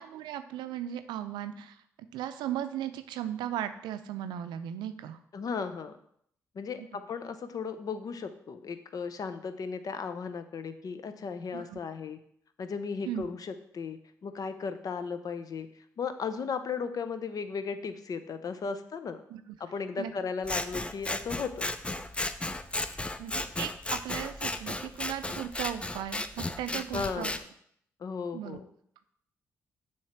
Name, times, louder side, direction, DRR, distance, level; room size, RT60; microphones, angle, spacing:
voice 1, 0.0-1.8 2.1-5.2 11.5-11.8 13.0-13.3 19.3-19.6 20.0-20.1 23.2-27.3 28.3-28.6, right 11 dB, 80° right, 10 dB, 0.5 m, -37 dB
voice 2, 5.3-5.9 6.5-12.2 12.6-15.7 16.0-19.2 19.6-22.0 26.7-27.4 28.0-28.6, left 5 dB, 55° left, 10 dB, 0.7 m, -36 dB
Scissors, 20.4-27.4, left 2 dB, 15° left, 0.5 m, -34 dB
7.2 x 3.2 x 5.8 m, 0.68 s
hypercardioid pair, 50°, 7 cm